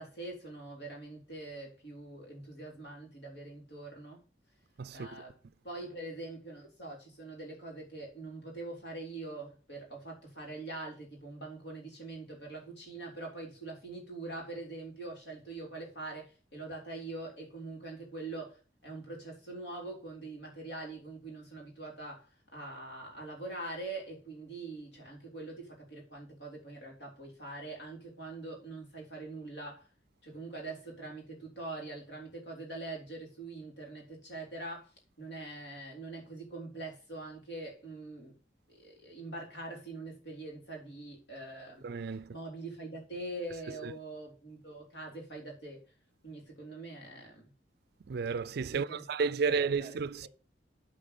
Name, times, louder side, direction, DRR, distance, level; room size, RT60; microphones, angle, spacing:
voice 1, 0.0-4.2 4.9-5.4 5.6-22.3 22.5-29.9 30.2-34.9 35.2-38.4 38.7-41.9 42.3-45.8 46.2-47.5 48.7-50.3, right 2 dB, 70° left, 3.7 m, -43 dB
voice 2, 4.8-5.2 41.8-42.3 43.8-43.9 48.1-50.3, right 5 dB, 60° right, 0.4 m, -32 dB
8.8 x 4.4 x 6.7 m
head